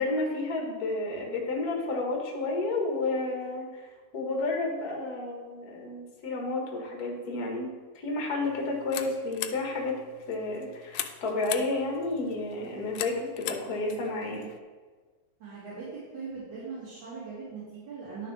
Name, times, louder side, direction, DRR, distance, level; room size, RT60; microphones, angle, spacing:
voice 1, 0.0-3.8 4.1-7.7 8.0-10.0 10.3-14.5, left 2 dB, 40° left, 0 dB, 1.4 m, -31 dB
sound 1, 8.4-14.6, left 12 dB, 80° left, 1.7 m, -40 dB
voice 2, 15.4-18.3, right 4 dB, 70° right, -10 dB, 3.7 m, -40 dB
11.5 x 6.5 x 3.3 m, 1.4 s
omnidirectional pair, 3.5 m